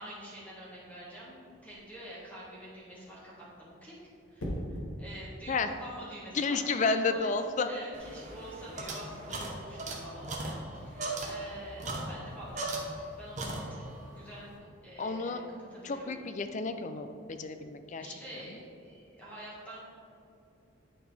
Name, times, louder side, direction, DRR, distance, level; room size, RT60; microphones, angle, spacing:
voice 1, 0.0-4.0 4.3-7.3 7.7-12.6 13.1-13.8 14.2-14.5 14.8-15.4 15.7-16.2 18.0-19.8, equal, 5° left, -7 dB, 1.7 m, -47 dB
sound 1, 1.6-1.9 4.4-4.9 6.9-7.2, equal, 90° left, 1.4 m, -38 dB
voice 2, 6.3-7.7 15.0-15.4 15.8-18.1, left 4 dB, 35° left, 8 dB, 0.4 m, -31 dB
sound 2, 7.9-13.1 13.4-14.0, right 2 dB, 35° right, 1.0 m, -38 dB
10.5 x 4.3 x 3.4 m, 2.6 s
head